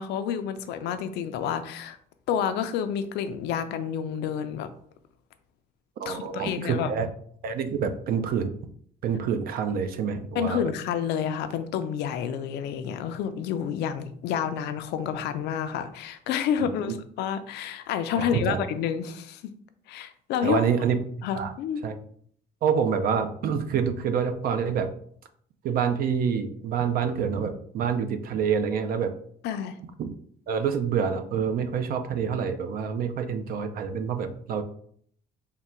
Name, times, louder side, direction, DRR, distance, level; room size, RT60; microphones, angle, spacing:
voice 1, 0.0-2.0 2.3-4.7 6.1-6.9 10.3-19.4 19.9-20.6 21.2-21.8 29.4-29.8, left 8 dB, 80° left, 10 dB, 0.5 m, -29 dB
voice 2, 6.0-7.1 7.4-8.5 9.0-10.6 16.6-16.7 18.2-18.6 20.4-21.0 21.3-21.5 21.8-21.9 22.6-24.9 25.6-29.1 30.0-30.1 30.5-34.6, right 7 dB, 60° right, 8 dB, 0.4 m, -27 dB
3.6 x 2.2 x 4.2 m, 0.62 s
cardioid pair, 110°, 17 cm